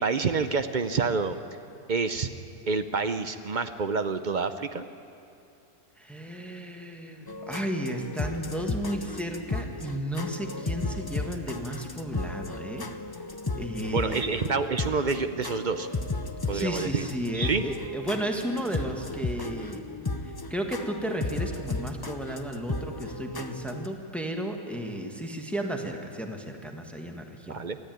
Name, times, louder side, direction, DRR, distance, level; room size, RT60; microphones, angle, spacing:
voice 1, 0.0-1.4 1.9-2.3 2.7-4.9 13.9-15.9 16.5-17.1 17.3-17.6 27.5-27.8, right 4 dB, 50° right, 10 dB, 0.6 m, -28 dB
voice 2, 6.0-12.9 13.6-14.2 16.5-19.8 20.2-27.6, right 1 dB, ahead, 3 dB, 1.5 m, -33 dB
sound 1, 7.3-23.9, left 3 dB, 25° left, 0.5 m, -34 dB
23.5 x 14.0 x 9.2 m, 2.7 s
omnidirectional pair, 1.6 m